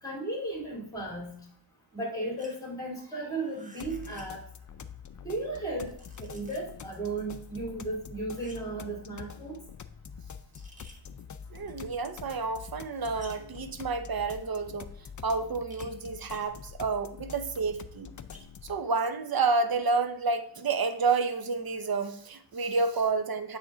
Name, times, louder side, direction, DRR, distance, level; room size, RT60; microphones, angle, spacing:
voice 1, 0.0-1.3 1.9-4.4 5.2-5.9 6.2-9.6, right 2 dB, 5° left, -3 dB, 2.8 m, -35 dB
sound 1, 2.4-2.7 3.4-4.4 5.6-6.8 8.3-8.8 10.5-11.0 13.2-13.6 15.7-16.0 16.3-16.7 18.3-18.7, right 1 dB, 15° right, 1.3 m, -53 dB
sound 2, 3.8-18.8, left 7 dB, 40° left, 0.4 m, -46 dB
voice 2, 11.5-14.9 15.2-18.1 18.6-23.6, right 4 dB, 45° right, 8 dB, 0.7 m, -29 dB
8.6 x 3.6 x 3.8 m, 0.64 s
wide cardioid pair, 55°, 49 cm